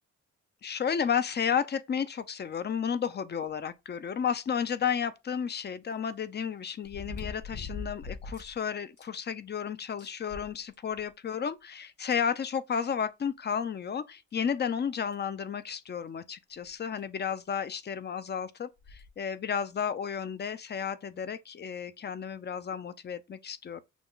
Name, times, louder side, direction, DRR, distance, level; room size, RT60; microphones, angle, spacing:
voice 1, 0.6-23.8, left 7 dB, 35° left, 0.6 m, -32 dB
sound 1, 4.9-5.0 6.8-8.6 9.0-9.1 9.5-9.6 10.0-11.1 12.1-12.2 13.6-13.7 14.3-14.4 15.1-15.3 16.7-16.8 17.0-17.1 18.8-19.1 19.8-19.9, left 4 dB, 50° left, 3.2 m, -41 dB
6.0 x 2.3 x 3.8 m
cardioid pair, 90°, 30 cm